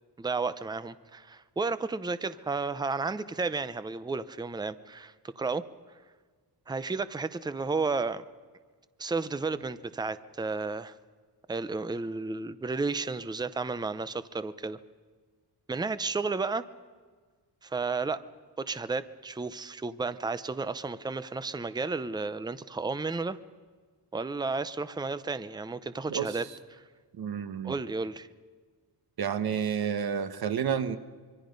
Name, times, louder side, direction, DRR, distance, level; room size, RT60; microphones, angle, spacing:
voice 1, 0.2-5.6 6.7-8.2 9.0-10.9 11.5-14.8 15.7-16.6 17.6-18.2 18.6-23.4 24.1-26.5 26.7-26.8 27.6-28.3, right 4 dB, 10° right, 14 dB, 0.6 m, -32 dB
voice 2, 27.2-27.7 29.2-31.0, right 7 dB, 60° right, 11 dB, 1.3 m, -30 dB
26.0 x 23.5 x 5.3 m, 1.5 s
wide cardioid pair, 140°, 41 cm